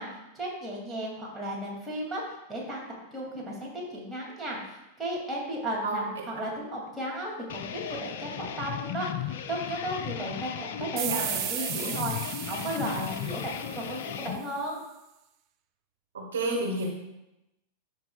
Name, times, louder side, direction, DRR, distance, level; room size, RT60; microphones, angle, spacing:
voice 1, 0.0-2.2 2.5-14.8, right 1 dB, 10° right, -4 dB, 2.6 m, -35 dB
sound 1, 7.5-14.4, left 10 dB, 55° left, 0.4 m, -36 dB
sound 2, 11.0-14.3, right 14 dB, 40° right, 0.4 m, -35 dB
voice 2, 16.1-16.9, right 2 dB, 70° right, -1 dB, 1.5 m, -30 dB
13.0 x 5.3 x 2.4 m, 0.93 s
figure-of-eight pair, 90°, 0 cm